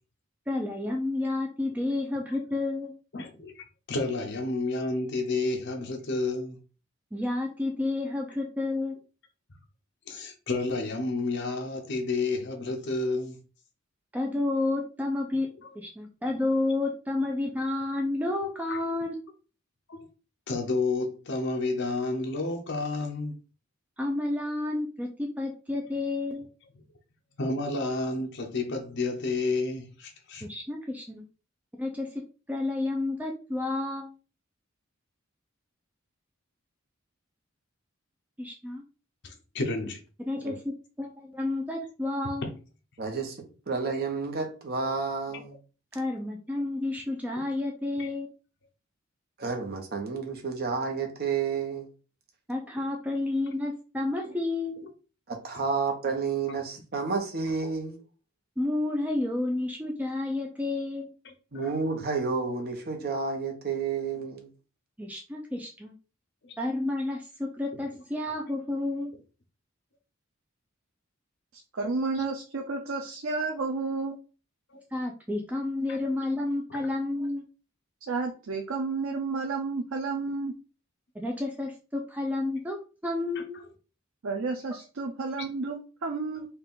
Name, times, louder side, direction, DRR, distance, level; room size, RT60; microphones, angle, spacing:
voice 1, 0.5-2.9 7.1-8.9 14.1-15.5 15.8-19.1 24.0-26.4 30.4-31.2 31.8-32.1 32.5-34.1 38.4-38.8 40.3-42.5 45.9-48.3 52.5-54.8 58.6-61.1 65.0-65.9 66.6-69.1 74.9-77.4 81.1-82.8 83.0-83.6, left 2 dB, 10° right, 0.5 m, -30 dB
voice 2, 3.1-6.6 10.1-13.4 15.6-15.7 18.7-18.8 19.9-20.1 20.5-23.3 27.4-30.5 39.2-40.0 45.3-45.4 48.0-48.1 54.2-54.3 56.5-56.7 61.2-61.3 61.6-61.7 66.4-66.5 74.7-74.8 75.9-76.0 83.5-83.6, left 3 dB, 60° left, 0.9 m, -31 dB
voice 3, 43.0-43.4 43.7-45.6 49.4-51.9 55.3-58.0 61.5-64.5, right 4 dB, 50° right, 1.1 m, -30 dB
voice 4, 71.7-74.2 78.1-80.5 84.2-86.5, right 3 dB, 85° right, 0.7 m, -31 dB
4.3 x 2.5 x 3.7 m
head